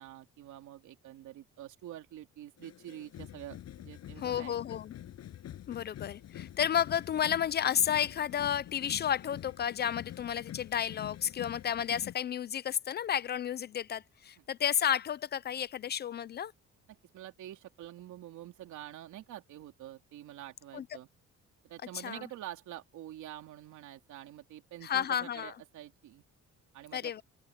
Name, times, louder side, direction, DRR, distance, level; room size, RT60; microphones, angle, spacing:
voice 1, 0.0-4.5 16.9-21.1 21.6-26.2 26.7-27.2, right 13 dB, 85° right, 3.3 m, -47 dB
sound 1, 2.6-12.2, left 11 dB, 60° left, 6.9 m, -46 dB
voice 2, 4.2-4.9 5.7-16.5 20.7-20.9 21.9-22.2 24.8-25.5 26.9-27.2, left 9 dB, 35° left, 0.4 m, -32 dB
cardioid pair, 170°, 29 cm